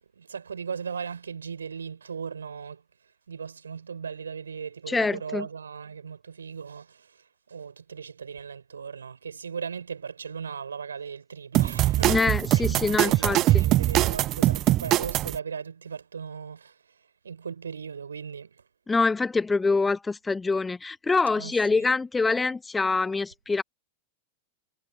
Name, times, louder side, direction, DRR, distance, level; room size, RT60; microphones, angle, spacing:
voice 1, 0.0-2.8 3.3-12.2 12.5-16.9 17.2-18.6 21.3-21.9, right 6 dB, 70° right, 5.0 m, -38 dB
voice 2, 4.9-5.5 12.1-13.6 18.9-23.6, left 3 dB, 10° left, 1.3 m, -25 dB
sound 1, 11.5-15.4, right 15 dB, 35° right, 0.4 m, -22 dB
figure-of-eight pair, 90°, 0 cm